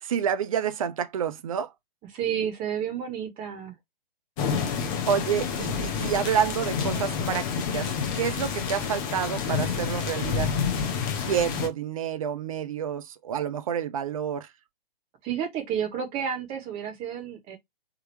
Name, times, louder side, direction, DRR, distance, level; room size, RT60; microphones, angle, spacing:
voice 1, 0.0-1.7 5.1-7.9 8.1-10.5 11.3-14.5, right 8 dB, 35° right, 0.6 m, -28 dB
voice 2, 2.1-3.7 15.2-17.6, right 8 dB, 20° right, 1.5 m, -31 dB
sound 1, 4.4-11.7, left 6 dB, 20° left, 0.8 m, -29 dB
4.6 x 3.7 x 3.1 m
figure-of-eight pair, 130°, 29 cm